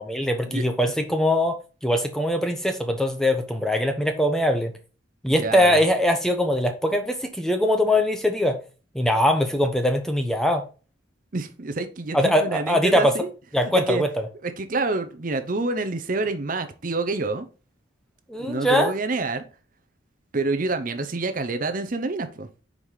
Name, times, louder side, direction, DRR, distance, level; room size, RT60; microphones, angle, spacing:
voice 1, 0.0-1.6 1.8-4.7 5.2-8.6 8.9-10.6 12.1-13.1 13.5-14.3 18.3-18.9, left 1 dB, 5° left, 0.7 m, -22 dB
voice 2, 5.4-5.8 11.3-13.3 13.9-14.0 14.4-17.5 18.5-19.4 20.3-22.5, right 3 dB, 40° right, 0.6 m, -27 dB
5.2 x 4.8 x 5.5 m
head